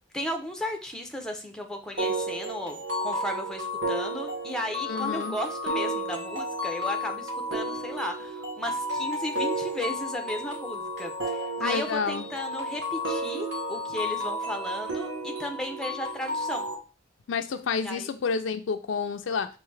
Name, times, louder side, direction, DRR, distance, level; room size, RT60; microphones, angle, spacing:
voice 1, 0.1-16.7 17.8-18.1, left 1 dB, 5° left, 4 dB, 0.6 m, -35 dB
sound 1, 2.0-16.8, equal, 70° right, 1.1 m, -32 dB
voice 2, 4.9-5.4 11.6-12.3 17.3-19.5, left 5 dB, 75° left, 9 dB, 0.4 m, -29 dB
4.7 x 2.6 x 3.2 m, 0.33 s
head